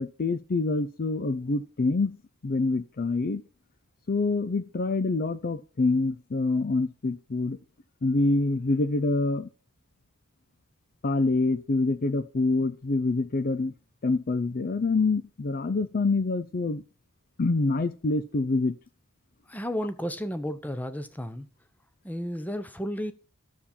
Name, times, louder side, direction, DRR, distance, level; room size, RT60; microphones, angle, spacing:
voice 1, 0.0-2.2 2.4-3.4 4.1-7.6 8.0-9.5 11.0-13.7 14.0-16.8 17.4-18.8, left 3 dB, 45° left, 0.5 m, -26 dB
voice 2, 19.5-21.5 22.0-23.1, equal, 10° left, 0.8 m, -32 dB
12.5 x 7.1 x 4.3 m
head